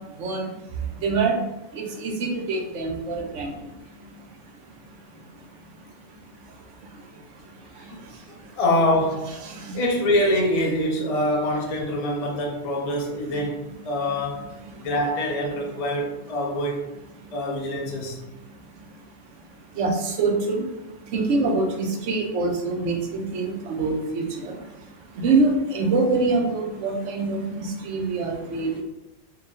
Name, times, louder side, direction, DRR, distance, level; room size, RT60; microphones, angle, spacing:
voice 1, 1.0-1.4 1.8-3.5 9.4-9.5 19.8-20.7 21.1-24.6 25.2-28.8, right 3 dB, 70° right, 2 dB, 1.0 m, -24 dB
voice 2, 8.3-9.4 9.7-14.4 14.8-16.9 17.3-18.2, left 1 dB, 35° left, -1 dB, 0.7 m, -25 dB
4.7 x 2.4 x 3.7 m, 0.93 s
omnidirectional pair, 1.3 m